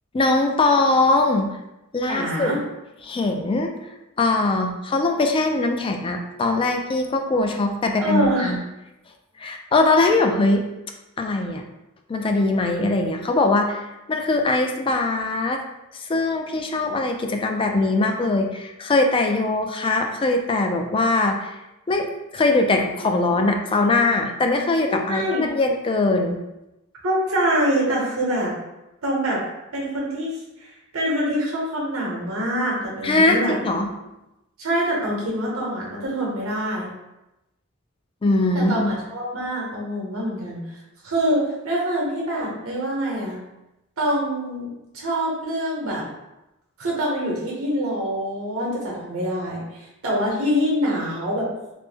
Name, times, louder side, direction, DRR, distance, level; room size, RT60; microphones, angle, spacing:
voice 1, 0.1-1.6 1.9-2.6 3.0-3.7 4.2-8.6 9.4-10.6 11.2-11.6 12.1-15.6 15.9-21.6 21.9-26.4 33.0-33.9 38.2-38.9, left 2 dB, 25° left, 4 dB, 0.3 m, -21 dB
voice 2, 2.1-2.6 8.0-8.5 24.9-25.4 27.0-28.5 29.0-29.4 29.7-30.4 30.9-33.5 34.6-36.9 38.5-40.6 41.0-43.4 44.0-46.0 46.8-51.7, equal, 75° right, -3 dB, 1.0 m, -25 dB
3.2 x 2.0 x 3.3 m, 0.95 s
head